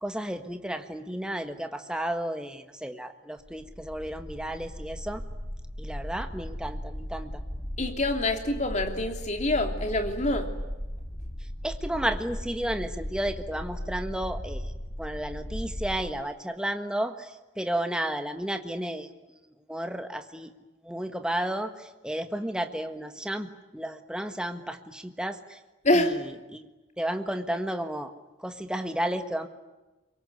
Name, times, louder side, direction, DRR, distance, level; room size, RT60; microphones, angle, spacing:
voice 1, 0.0-5.2 5.8-7.4 11.6-14.7 15.0-20.5 20.8-25.6 25.9-26.2 26.5-26.7 27.0-28.1 28.4-29.5, right 1 dB, 5° right, 7 dB, 1.5 m, -32 dB
sound 1, 3.5-16.0, equal, 15° left, 2.6 m, -37 dB
voice 2, 7.8-10.5 25.8-26.2, left 1 dB, 35° left, 5 dB, 3.1 m, -26 dB
25.0 x 23.0 x 9.7 m, 1.1 s
head